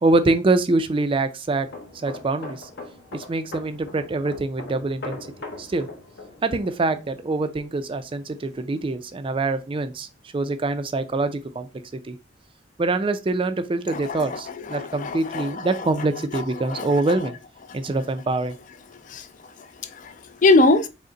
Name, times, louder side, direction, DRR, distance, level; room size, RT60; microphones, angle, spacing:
voice 1, 0.0-1.7 2.0-2.7 3.1-5.2 5.6-5.9 6.4-10.1 10.3-11.7 12.0-12.2 12.8-17.4 17.7-18.6, right 2 dB, 30° right, 0.4 m, -24 dB
sound 1, 1.6-9.1 9.4-9.7, left 2 dB, 60° left, 0.9 m, -41 dB
voice 2, 13.9-15.9 16.3-17.2 17.7-17.8 18.9-20.9, left 2 dB, 40° left, 0.4 m, -24 dB
5.1 x 2.1 x 3.8 m
head